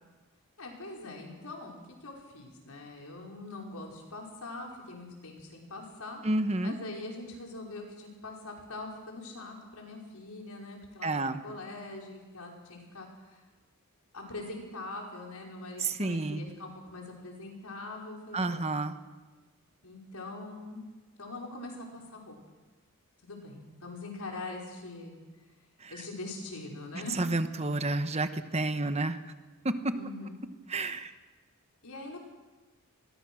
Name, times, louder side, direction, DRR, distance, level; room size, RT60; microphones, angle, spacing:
voice 1, 0.6-6.2 6.6-13.4 14.1-18.8 19.8-20.9 21.2-22.4 23.2-25.1 25.9-27.2 29.9-30.4 31.8-32.2, left 2 dB, 80° left, 0 dB, 5.4 m, -43 dB
voice 2, 6.2-6.7 11.0-11.4 15.8-16.4 18.3-18.9 27.2-29.2 29.6-29.9 30.7-31.1, right 2 dB, 30° right, 9 dB, 1.1 m, -30 dB
26.5 x 21.5 x 6.4 m, 1.3 s
head